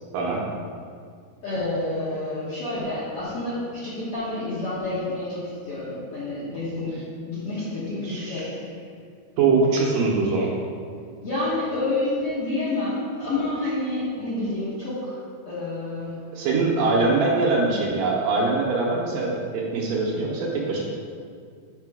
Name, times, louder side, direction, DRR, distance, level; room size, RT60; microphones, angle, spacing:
voice 1, 1.4-6.9 7.3-8.5 11.2-15.2 15.5-16.2 16.8-16.9, left 2 dB, 55° left, -9 dB, 1.8 m, -28 dB
voice 2, 8.0-8.5 9.4-10.5 16.3-20.8, right 3 dB, 70° right, -3 dB, 2.4 m, -23 dB
8.2 x 4.3 x 6.1 m, 2.1 s
omnidirectional pair, 4.4 m